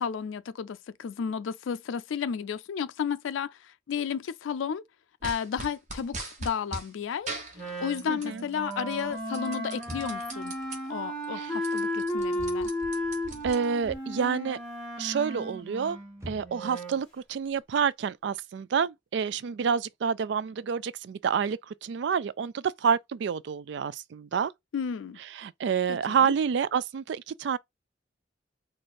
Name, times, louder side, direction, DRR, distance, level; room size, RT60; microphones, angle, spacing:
voice 1, 0.0-4.8 5.2-10.6 10.9-12.7 24.7-25.2 26.1-26.3, left 7 dB, 90° left, 0.4 m, -33 dB
sound 1, 5.2-6.9 7.3-8.4 8.7-10.8 11.2-11.3 11.5-13.9, right 2 dB, 40° right, 1.1 m, -40 dB
Wind instrument woodwind instrument, 7.6-17.0, equal, 5° left, 1.6 m, -34 dB
voice 2, 8.1-8.4 11.3-11.5 13.4-14.6 15.0-16.0 16.3-24.5 25.3-27.6, right 6 dB, 65° right, 0.3 m, -28 dB
sound 2, 9.8-10.4 12.2-12.7 13.0-13.9 14.2-14.7 15.3-16.8, equal, 15° right, 0.7 m, -45 dB
4.3 x 2.5 x 4.6 m
head